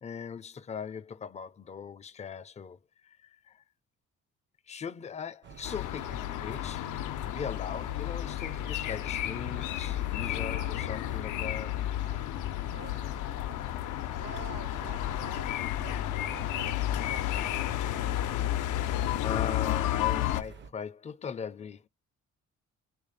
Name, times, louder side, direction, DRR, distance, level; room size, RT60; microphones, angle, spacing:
voice 1, 0.0-3.6 4.7-6.9 7.2-11.8 19.2-21.8, left 6 dB, 25° left, 0.4 m, -40 dB
sound 1, 5.4-20.7, right 6 dB, 40° right, 0.5 m, -48 dB
sound 2, 5.6-20.4, left 14 dB, 80° left, 0.5 m, -32 dB
voice 2, 13.8-18.2, right 8 dB, 80° right, 1.3 m, -49 dB
3.1 x 2.5 x 3.8 m
cardioid pair, 90°, 30 cm